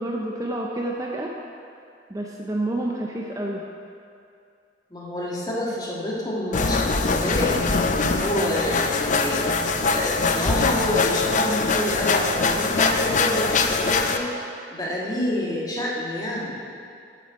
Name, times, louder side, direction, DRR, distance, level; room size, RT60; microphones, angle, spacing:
voice 1, 0.0-1.3 2.1-3.6, right 1 dB, 20° right, -1 dB, 0.6 m, -28 dB
voice 2, 4.9-7.6 8.2-9.4 9.9-14.2 14.7-16.6, left 1 dB, 20° left, -4 dB, 1.6 m, -28 dB
sound 1, 6.5-14.2, left 4 dB, 45° left, 0.5 m, -22 dB
8.4 x 8.2 x 4.7 m, 2.4 s
head